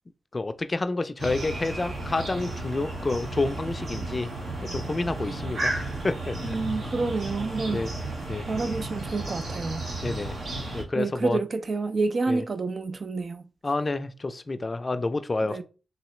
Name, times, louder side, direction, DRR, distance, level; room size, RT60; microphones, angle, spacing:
voice 1, 0.3-4.3 4.7-6.6 7.7-7.9 8.3-8.4 10.0-10.3 10.7-11.4 12.3-12.4 13.6-15.6, left 2 dB, 40° left, 0.4 m, -29 dB
sound 1, 1.2-10.8, right 2 dB, 75° right, 1.1 m, -33 dB
voice 2, 6.4-7.9 8.5-9.9 11.0-13.5 15.5-15.6, right 3 dB, 55° right, 0.4 m, -28 dB
3.8 x 2.7 x 3.1 m
cardioid pair, 50°, 0 cm